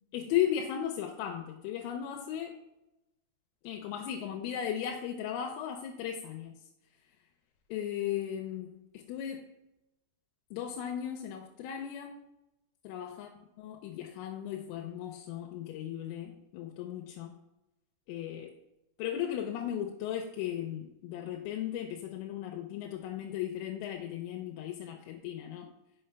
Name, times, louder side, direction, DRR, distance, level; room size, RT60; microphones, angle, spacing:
voice 1, 0.1-2.6 3.6-6.5 7.7-9.5 10.5-12.2 12.9-13.3 13.6-17.3 18.1-18.5 19.0-25.7, left 10 dB, 90° left, 3 dB, 3.2 m, -36 dB
6.6 x 5.7 x 3.3 m, 0.93 s
omnidirectional pair, 5.7 m